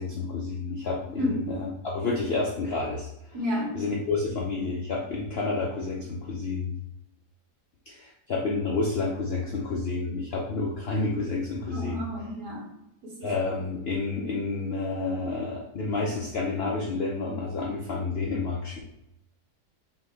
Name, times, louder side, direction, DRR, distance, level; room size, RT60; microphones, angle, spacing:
voice 1, 0.0-3.4 3.7-6.7 7.9-12.3 13.2-18.8, left 3 dB, 75° left, -2 dB, 0.5 m, -30 dB
voice 2, 3.3-3.8 11.7-12.7 13.0-13.3, left 1 dB, 70° right, -3 dB, 1.9 m, -30 dB
5.2 x 2.8 x 3.3 m, 0.84 s
omnidirectional pair, 1.8 m